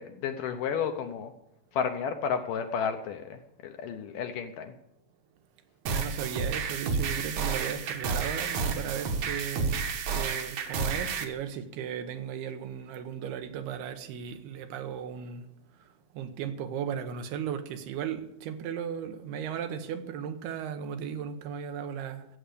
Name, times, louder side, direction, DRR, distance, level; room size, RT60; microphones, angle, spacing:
voice 1, 0.0-1.3 1.7-4.7, left 7 dB, 75° left, 2.1 m, -32 dB
sound 1, 5.9-11.2, right 5 dB, 60° right, 2.0 m, -31 dB
voice 2, 5.9-9.8 10.1-15.5 16.1-22.3, right 8 dB, 85° right, 3.0 m, -36 dB
14.5 x 7.9 x 8.4 m
omnidirectional pair, 4.5 m